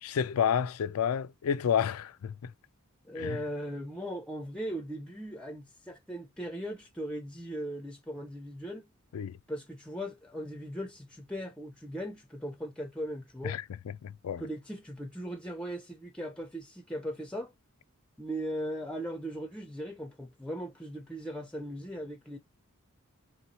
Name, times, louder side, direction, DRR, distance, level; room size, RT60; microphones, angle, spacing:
voice 1, 0.0-2.5 3.2-3.4 9.1-9.4 13.4-14.4, left 8 dB, 80° left, 0.4 m, -30 dB
voice 2, 3.0-8.9 9.5-13.6 14.4-17.5 18.2-22.4, equal, 5° left, 0.5 m, -38 dB
3.2 x 3.0 x 4.0 m
head